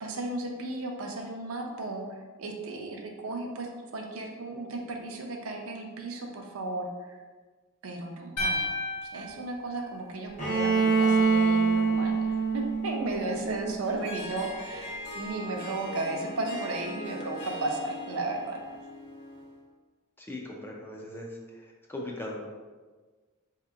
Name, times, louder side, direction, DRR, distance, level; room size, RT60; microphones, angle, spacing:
voice 1, 0.0-7.2 7.8-8.6 9.1-18.6, right 2 dB, 65° right, 1 dB, 0.5 m, -35 dB
sound 1, 8.4-10.6, left 2 dB, 85° left, 0.6 m, -33 dB
Bowed string instrument, 10.4-14.2, right 4 dB, 35° left, 0.8 m, -25 dB
Harp, 13.8-19.6, left 1 dB, 55° left, 1.1 m, -41 dB
voice 2, 20.2-22.5, left 1 dB, 10° left, -1 dB, 0.3 m, -39 dB
4.1 x 2.8 x 2.4 m, 1.4 s
head